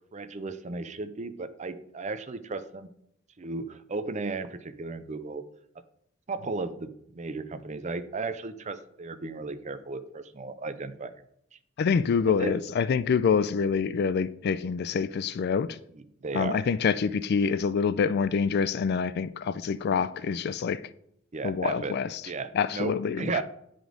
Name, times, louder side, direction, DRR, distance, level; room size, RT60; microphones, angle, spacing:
voice 1, 0.1-2.9 3.4-5.4 6.3-11.1 12.4-12.6 15.9-16.6 21.3-21.9 22.3-23.4, right 3 dB, 35° right, 0.5 m, -35 dB
voice 2, 11.8-15.8 16.3-20.8 21.4-22.2 22.5-23.4, left 6 dB, 50° left, 0.3 m, -26 dB
9.3 x 5.1 x 3.8 m
head